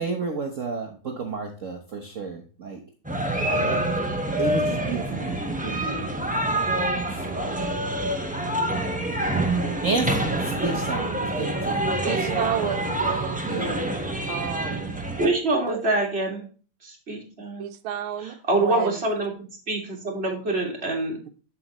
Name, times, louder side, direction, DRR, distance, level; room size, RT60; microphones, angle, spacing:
voice 1, 0.0-2.8 3.4-3.9 4.4-6.0 7.1-7.7 9.8-10.2 10.4-12.7 13.4-13.9, right 4 dB, 50° right, 3 dB, 1.1 m, -31 dB
sound 1, 3.0-15.3, right 1 dB, 10° right, 0.4 m, -26 dB
voice 2, 12.0-13.5 14.2-14.9 15.7-15.8 17.6-18.9, right 10 dB, 90° right, 9 dB, 1.5 m, -31 dB
voice 3, 15.2-16.4 16.8-17.7 18.5-19.3 19.7-21.2, right 2 dB, 30° right, 0 dB, 2.3 m, -25 dB
7.8 x 7.6 x 3.0 m, 0.38 s
omnidirectional pair, 2.2 m